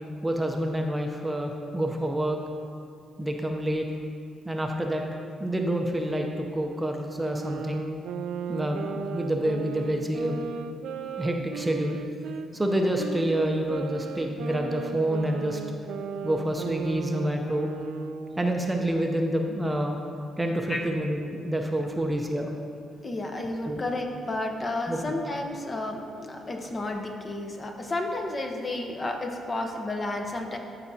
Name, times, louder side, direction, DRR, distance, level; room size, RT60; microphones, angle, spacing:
voice 1, 0.2-2.4 3.2-3.9 4.5-5.0 5.4-7.8 8.5-10.4 11.2-12.0 12.5-15.6 16.2-17.7 18.4-20.0 20.4-22.5 23.7-23.8 24.9-25.0, right 1 dB, 15° right, 2 dB, 0.6 m, -28 dB
sound 1, 7.2-12.5 13.0-18.6, right 6 dB, 80° right, 0.3 m, -36 dB
voice 2, 23.0-30.6, left 2 dB, 30° left, 3 dB, 0.8 m, -32 dB
13.0 x 4.8 x 2.8 m, 2.4 s
cardioid pair, 90°, 0 cm